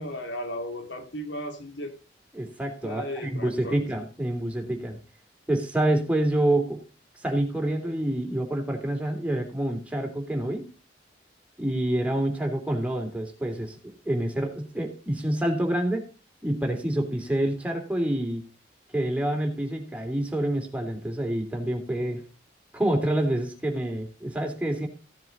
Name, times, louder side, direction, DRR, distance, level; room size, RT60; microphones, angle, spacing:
voice 1, 0.0-1.9 2.8-3.8, equal, 85° left, 5 dB, 2.6 m, -35 dB
voice 2, 2.3-5.0 5.5-6.8 7.2-10.6 11.6-16.0 16.4-18.4 18.9-22.2 22.7-24.9, right 1 dB, 5° right, 2 dB, 3.1 m, -27 dB
16.0 x 7.6 x 4.0 m, 0.33 s
head